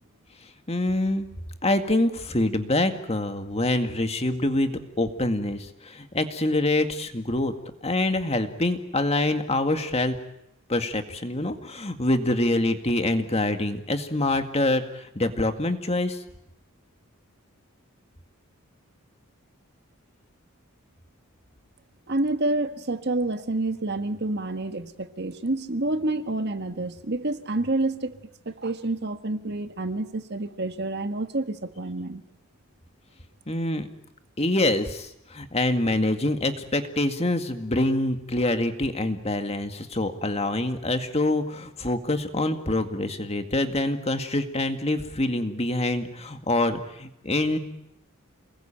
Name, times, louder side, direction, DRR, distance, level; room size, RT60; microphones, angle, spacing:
voice 1, 0.7-1.3 1.6-7.5 7.8-10.1 10.7-16.2 33.5-33.9 34.4-47.6, left 2 dB, 30° left, 7 dB, 2.1 m, -25 dB
voice 2, 22.1-28.2 28.4-32.2, right 2 dB, 50° right, 9 dB, 1.6 m, -28 dB
29.0 x 21.0 x 9.0 m, 0.81 s
head